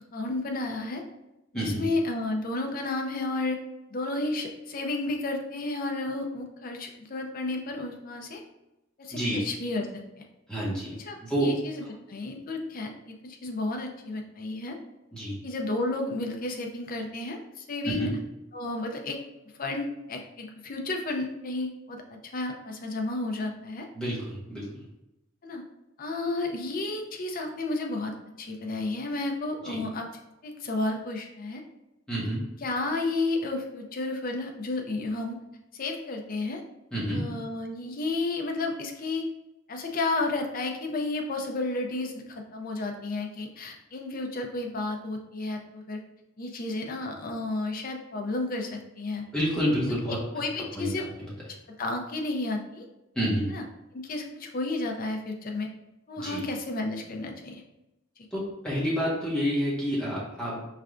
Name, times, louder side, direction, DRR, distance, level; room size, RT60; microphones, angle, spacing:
voice 1, 0.1-1.0 1.5-3.6 3.9-8.4 9.0-9.9 10.2-10.3 11.0-14.8 15.4-18.2 18.5-19.2 19.6-23.9 25.4-25.6 26.0-30.1 30.4-31.6 32.6-35.4 35.7-36.6 37.1-39.2 39.7-46.0 46.4-49.3 50.1-51.1 51.8-52.8 53.5-53.6 53.9-55.7 56.1-57.6 58.2-58.3, left 2 dB, 45° left, 3 dB, 0.5 m, -32 dB
voice 2, 1.5-1.8 9.1-9.4 10.5-11.5 15.1-15.4 17.8-18.1 23.9-24.8 29.6-29.8 32.1-32.4 36.9-37.3 49.3-50.2 50.7-50.9 51.2-51.3 53.1-53.5 56.2-56.5 58.3-60.6, equal, 5° left, -8 dB, 1.3 m, -29 dB
4.7 x 3.2 x 2.5 m, 0.95 s
head